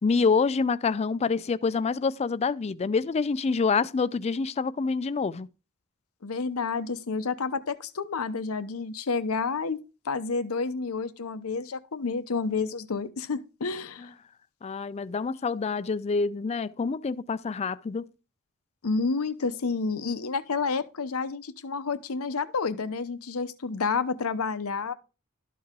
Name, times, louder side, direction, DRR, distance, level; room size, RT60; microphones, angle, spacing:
voice 1, 0.0-5.5 14.0-14.1 14.6-18.1, left 4 dB, 30° left, 0.4 m, -27 dB
voice 2, 6.2-9.8 10.0-14.0 18.8-24.9, left 4 dB, 85° left, 0.8 m, -30 dB
12.5 x 4.7 x 3.6 m
head